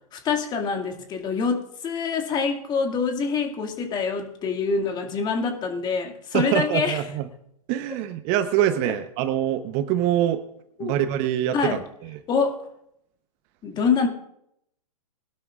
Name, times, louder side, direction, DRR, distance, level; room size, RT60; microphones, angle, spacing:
voice 1, 0.1-7.0 10.8-10.9 11.5-11.8 12.3-12.7 13.6-14.1, left 5 dB, 20° left, 3 dB, 2.2 m, -25 dB
voice 2, 6.3-7.2 7.7-10.4 10.8-11.8, right 11 dB, 35° right, 10 dB, 0.9 m, -24 dB
21.5 x 12.0 x 2.5 m, 0.74 s
hypercardioid pair, 125°, 19 cm